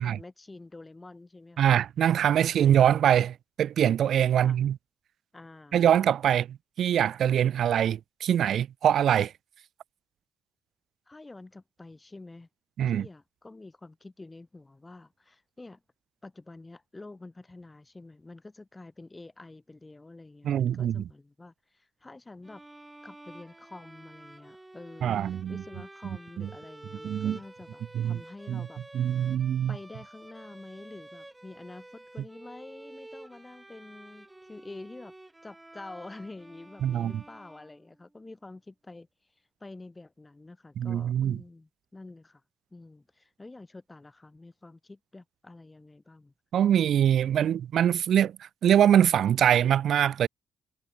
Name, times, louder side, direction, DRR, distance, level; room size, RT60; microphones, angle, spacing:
voice 1, 0.0-1.7 2.3-2.6 4.3-4.6 5.3-5.8 6.3-6.4 11.1-12.5 12.9-15.8 16.2-22.6 23.0-28.8 29.7-35.1 35.4-39.1 39.6-42.4 42.7-46.3, left 2 dB, 20° left, 5.9 m, -47 dB
voice 2, 1.6-4.7 5.7-9.3 12.8-13.0 20.4-21.0 25.0-25.6 26.4-26.5 27.0-27.4 27.9-28.2 28.5-28.7 28.9-29.7 36.8-37.2 40.8-41.4 46.5-50.3, right 10 dB, 65° right, 1.0 m, -23 dB
sound 1, 22.4-38.1, right 2 dB, 10° right, 5.1 m, -50 dB
cardioid pair, 90°, 0 cm